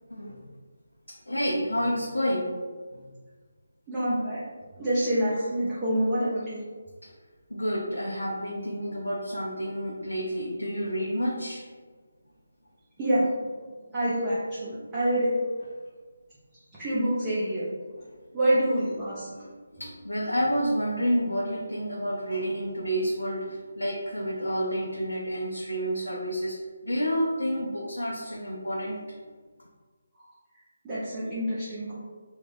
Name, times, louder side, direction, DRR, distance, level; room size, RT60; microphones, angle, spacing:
voice 1, 0.1-0.4 1.1-2.5 2.9-3.0 7.0-7.1 7.5-11.6 19.3-26.6 26.8-29.0, equal, 85° left, -3 dB, 0.5 m, -29 dB
voice 2, 3.9-4.4 4.8-6.6 13.0-13.3 13.9-15.3 16.7-17.7 18.3-19.3 30.8-32.0, right 1 dB, 15° right, -11 dB, 0.6 m, -26 dB
3.2 x 2.1 x 3.3 m, 1.4 s
figure-of-eight pair, 150°, 0 cm